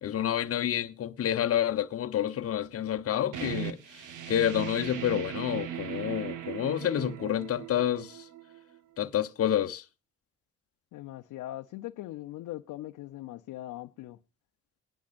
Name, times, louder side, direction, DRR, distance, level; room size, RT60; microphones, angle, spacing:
voice 1, 0.0-3.8 4.3-8.2 9.0-9.8, left 10 dB, 50° left, 0.8 m, -29 dB
sound 1, 3.3-8.8, right 10 dB, 85° right, 1.3 m, -38 dB
voice 2, 10.9-14.2, left 15 dB, 85° left, 0.7 m, -40 dB
19.5 x 10.5 x 2.4 m
cardioid pair, 90°, 30 cm